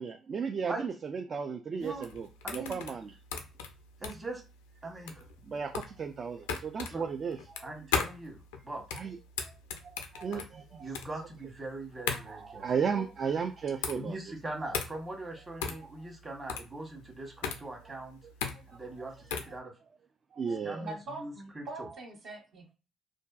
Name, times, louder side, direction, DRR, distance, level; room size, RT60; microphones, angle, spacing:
voice 1, 0.0-2.3 2.5-3.1 5.5-6.4 6.6-7.7 8.9-9.2 9.8-10.9 12.1-14.2 15.8-15.9 18.7-18.8 20.3-20.9, right 6 dB, 45° right, 5 dB, 0.3 m, -35 dB
voice 2, 1.7-2.1 2.4-2.8 4.0-4.4 4.8-5.2 6.9-7.1 7.6-8.4 8.6-8.8 10.3-10.4 10.8-12.7 13.9-18.2 18.7-19.7 20.6-21.9, right 2 dB, 30° right, 1 dB, 1.0 m, -41 dB
sound 1, 1.8-19.6, left 6 dB, 80° left, 0.3 m, -37 dB
voice 3, 20.8-22.7, right 2 dB, 65° right, -1 dB, 1.0 m, -43 dB
2.5 x 2.2 x 2.3 m, 0.32 s
hypercardioid pair, 50°, 0 cm